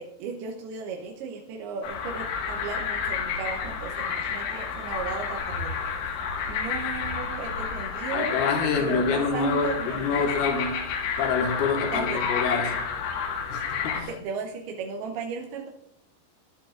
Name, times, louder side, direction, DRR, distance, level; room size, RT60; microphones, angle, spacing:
voice 1, 0.0-5.8 6.5-8.5 8.8-10.3 11.9-12.2 14.1-15.7, right 5 dB, 75° right, 2.4 m, -36 dB
sound 1, 1.8-14.0, left 6 dB, 85° left, 4.3 m, -30 dB
voice 2, 8.1-10.8 11.2-12.8 13.5-14.1, left 5 dB, 65° left, 3.0 m, -26 dB
21.5 x 11.5 x 2.5 m
omnidirectional pair, 5.4 m